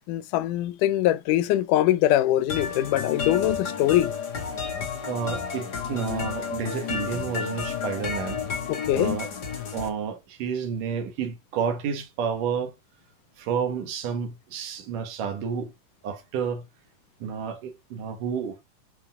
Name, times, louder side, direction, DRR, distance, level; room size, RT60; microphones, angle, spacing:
voice 1, 0.1-4.1 8.7-9.2, left 13 dB, 85° left, 2.2 m, -23 dB
sound 1, 2.5-9.9, left 6 dB, 35° left, 2.1 m, -31 dB
voice 2, 5.1-8.4 8.9-9.3 9.7-12.7 13.4-15.7 16.0-16.6 17.2-18.6, right 7 dB, 85° right, 3.1 m, -30 dB
12.0 x 4.6 x 3.6 m
omnidirectional pair, 3.6 m